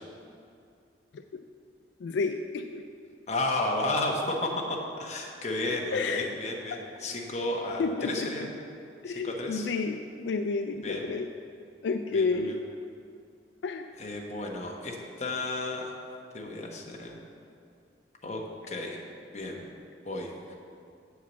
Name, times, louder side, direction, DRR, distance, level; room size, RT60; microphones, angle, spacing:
voice 1, 2.0-2.8 5.9-6.3 7.8-8.3 9.0-11.3 11.8-12.7 13.6-13.8, left 4 dB, 75° left, 6 dB, 0.3 m, -30 dB
voice 2, 3.3-4.6 5.0-8.5 9.1-9.7 10.8-11.0 12.1-12.6 14.0-15.9 16.3-17.1 18.2-18.4 18.7-19.0 19.3-19.6 20.0-20.6, left 2 dB, 40° left, -1 dB, 1.0 m, -32 dB
8.0 x 4.7 x 7.1 m, 2.4 s
head